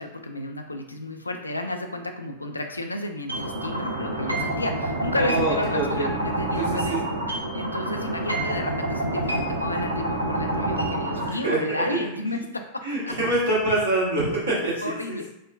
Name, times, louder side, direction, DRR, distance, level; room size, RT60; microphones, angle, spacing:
voice 1, 0.0-7.0 7.5-12.6 13.0-13.1 14.8-15.3, left 2 dB, 80° left, 5 dB, 0.3 m, -32 dB
sound 1, 3.3-11.3, right 1 dB, 85° right, 0.5 m, -27 dB
voice 2, 5.1-6.1 6.6-7.0 11.2-12.0 12.8-15.3, right 2 dB, 65° right, -6 dB, 1.3 m, -26 dB
4.5 x 2.1 x 2.3 m, 0.82 s
figure-of-eight pair, 90°, 0 cm